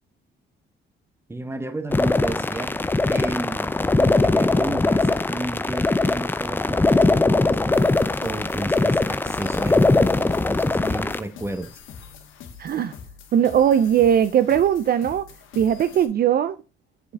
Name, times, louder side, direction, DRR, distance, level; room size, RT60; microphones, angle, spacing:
voice 1, 1.3-2.8 3.1-7.8 8.2-11.8, right 2 dB, 10° right, 0.8 m, -33 dB
sound 1, 1.9-11.2, left 2 dB, 10° left, 0.4 m, -21 dB
sound 2, 7.7-16.1, left 6 dB, 85° left, 1.3 m, -44 dB
voice 2, 12.6-13.0 13.3-15.3 15.5-16.6, right 9 dB, 50° right, 0.4 m, -19 dB
7.1 x 4.9 x 3.3 m
cardioid pair, 90°, 20 cm